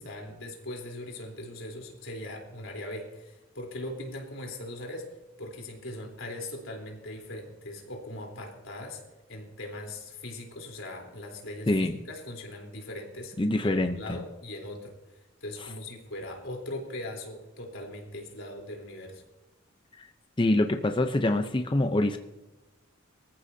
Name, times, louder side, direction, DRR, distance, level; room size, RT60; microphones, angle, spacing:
voice 1, 0.0-9.0 9.3-13.3 13.6-19.2, left 1 dB, 85° left, 2 dB, 3.7 m, -40 dB
voice 2, 13.4-14.2 20.0-20.1 20.4-22.2, left 1 dB, 25° left, 7 dB, 0.7 m, -25 dB
23.5 x 14.5 x 2.8 m, 1.1 s
head